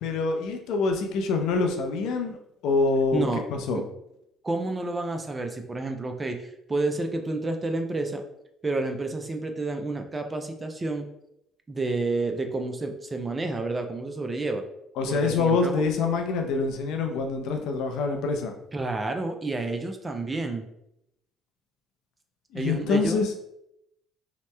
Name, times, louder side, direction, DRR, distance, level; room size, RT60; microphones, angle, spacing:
voice 1, 0.0-2.4 2.6-3.8 15.0-18.5 22.5-23.3, left 4 dB, 75° left, 4 dB, 0.5 m, -25 dB
voice 2, 3.1-3.4 3.7-3.8 4.4-8.2 8.6-11.1 11.7-14.6 15.1-15.8 18.7-20.7 22.5-23.2, right 2 dB, 25° right, 5 dB, 0.4 m, -30 dB
2.8 x 2.1 x 3.2 m, 0.82 s
supercardioid pair, 70°, 0 cm